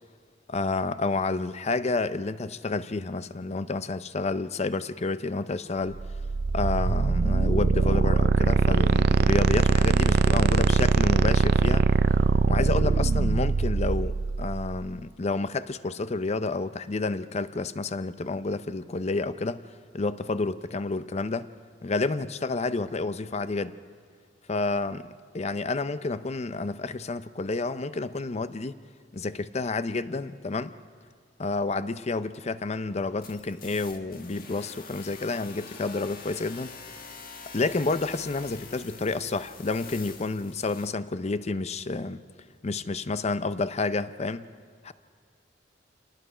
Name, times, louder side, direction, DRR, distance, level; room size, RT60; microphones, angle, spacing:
voice 1, 0.5-6.0 6.5-11.9 12.5-19.6 19.9-21.5 21.8-23.7 24.5-25.0 25.3-28.8 29.1-30.7 31.4-36.8 37.5-42.2 42.6-44.5 44.8-44.9, left 3 dB, 35° left, 0.6 m, -30 dB
sound 1, 6.0-14.8, right 4 dB, 60° right, 0.5 m, -22 dB
sound 2, 33.2-40.9, left 5 dB, 55° left, 1.6 m, -45 dB
27.0 x 19.5 x 5.0 m
head